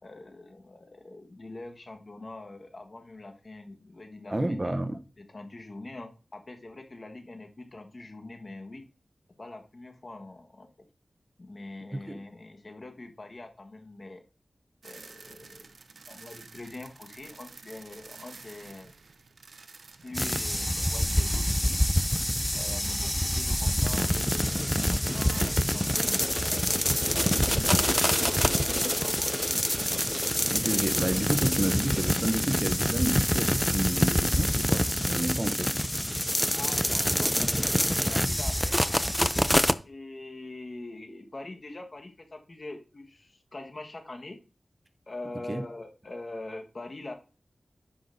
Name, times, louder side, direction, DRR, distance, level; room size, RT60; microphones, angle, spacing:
voice 1, 0.0-4.8 5.2-8.9 9.4-10.7 11.4-14.2 14.8-15.7 16.1-18.9 20.0-21.8 22.5-26.6 27.1-29.3 36.5-38.8 39.8-44.4 45.1-47.1, left 2 dB, 50° left, 1.4 m, -43 dB
voice 2, 4.3-5.0 11.9-12.2 30.1-35.8 45.5-45.6, right 1 dB, 30° right, 0.8 m, -30 dB
sound 1, 14.8-22.3 22.6-22.7 25.3-25.5, right 4 dB, 80° right, 0.6 m, -49 dB
sound 2, 20.1-39.7, equal, 5° left, 0.4 m, -26 dB
9.9 x 5.7 x 2.7 m
cardioid pair, 50°, 0 cm